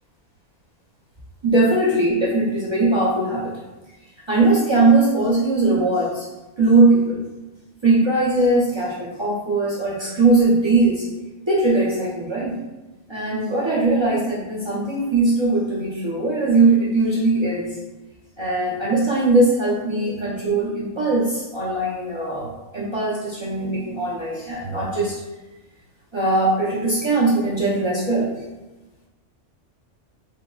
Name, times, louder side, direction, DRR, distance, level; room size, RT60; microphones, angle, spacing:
voice 1, 1.4-3.5 4.3-6.3 6.6-7.2 7.8-11.1 11.5-12.6 13.1-17.7 18.4-25.2 26.1-28.3, right 2 dB, 40° right, -8 dB, 0.4 m, -20 dB
3.6 x 2.1 x 2.2 m, 1.1 s
omnidirectional pair, 1.3 m